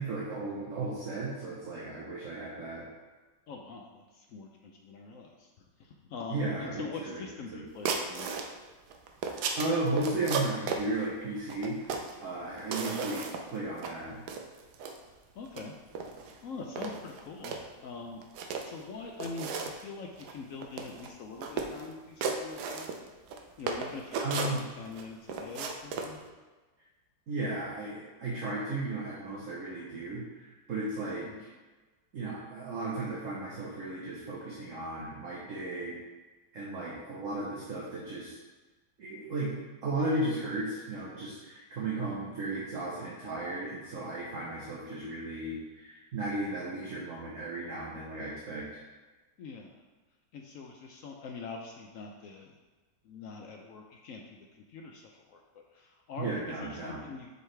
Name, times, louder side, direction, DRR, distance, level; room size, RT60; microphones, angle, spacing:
voice 1, 0.0-2.9 6.3-7.2 7.5-7.6 9.3-11.9 12.2-13.2 13.5-14.2 24.2-24.6 27.3-31.3 32.1-36.0 36.5-38.4 39.0-39.5 39.8-48.8 56.2-57.0, right 2 dB, 50° right, -5 dB, 1.2 m, -35 dB
voice 2, 3.5-8.3 12.7-13.0 15.3-15.7 16.0-16.1 16.4-22.9 23.6-26.2 31.2-31.4 49.4-49.8 50.3-52.6 53.0-57.3, left 4 dB, 80° left, 1 dB, 0.7 m, -44 dB
sound 1, 7.9-8.5 8.9-10.8 11.5-12.2 12.6-13.5 13.8-13.9 14.3-15.0 15.5-15.6 16.0-16.3 16.8-17.6 18.2-18.8 19.2-19.8 20.2-20.3 20.6-21.1 21.4-21.9 22.2-23.4 23.7-25.0 25.3-26.1, right 5 dB, 70° right, 1.1 m, -34 dB
6.8 x 4.7 x 3.3 m, 1.3 s
omnidirectional pair, 2.0 m